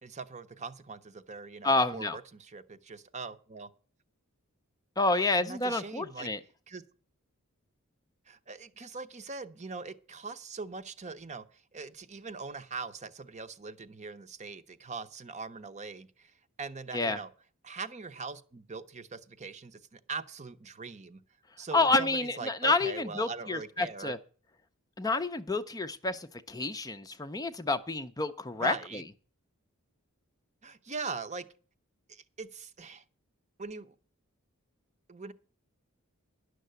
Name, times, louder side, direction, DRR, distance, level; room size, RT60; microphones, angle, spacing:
voice 1, 0.0-3.7 5.1-6.3 6.7-6.8 8.3-11.4 11.7-16.3 16.6-17.3 17.6-21.2 21.6-24.1 28.6-29.0 30.6-31.5 32.1-33.0 33.6-33.9 35.1-35.3, right 4 dB, 30° right, 0.7 m, -41 dB
voice 2, 1.6-2.2 5.0-6.4 16.9-17.2 21.7-24.2 25.0-29.0, left 3 dB, 15° left, 0.5 m, -29 dB
11.0 x 6.5 x 8.0 m
head